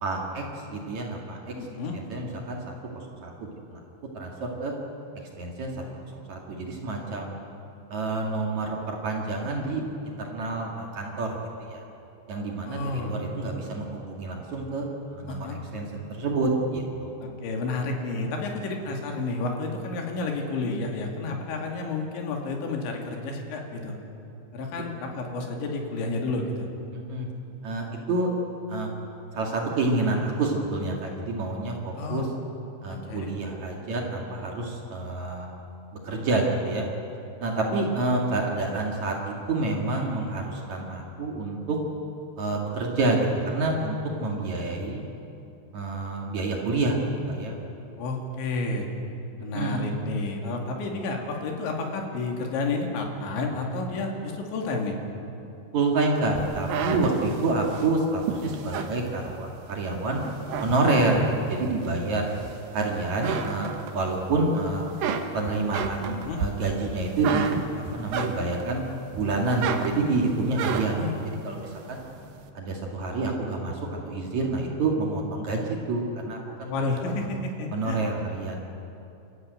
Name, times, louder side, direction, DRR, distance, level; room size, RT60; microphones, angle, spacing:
voice 1, 0.0-0.4 0.7-1.5 1.9-3.8 4.1-4.7 5.4-5.7 6.3-7.3 7.9-11.4 11.7-11.8 12.3-17.1 26.9-27.3 27.6-28.3 28.7-28.9 29.3-32.3 32.8-35.5 36.0-36.8 37.4-41.8 42.4-45.0 45.7-47.0 47.3-47.6 49.5-49.8 55.7-60.2 60.6-62.3 62.7-64.9 65.3-68.8 69.1-71.1 71.4-72.0 72.5-73.8 74.0-77.1 77.7-78.6, right 2 dB, 50° right, 0 dB, 2.8 m, -28 dB
voice 2, 1.6-2.0 12.7-13.2 15.3-15.6 17.2-23.9 24.5-26.7 32.0-32.3 32.9-33.3 37.7-37.9 48.0-48.9 49.4-55.0 66.1-66.4 71.0-71.3 76.7-78.0, left 3 dB, 80° left, 1 dB, 4.7 m, -31 dB
sound 1, 56.4-59.8 60.2-61.3 61.8-62.8 63.1-64.4 64.7-68.7 69.1-71.1, right 7 dB, 65° right, 2.5 m, -31 dB
29.0 x 14.0 x 9.3 m, 2.8 s
omnidirectional pair, 5.2 m